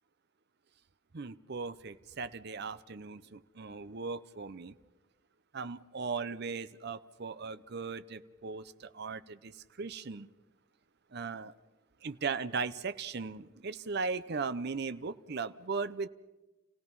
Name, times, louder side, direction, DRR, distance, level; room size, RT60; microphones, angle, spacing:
voice 1, 1.1-4.8 5.5-10.3 11.1-11.5 12.0-16.1, right 4 dB, 55° right, 13 dB, 0.7 m, -38 dB
29.5 x 17.0 x 5.5 m, 1.1 s
head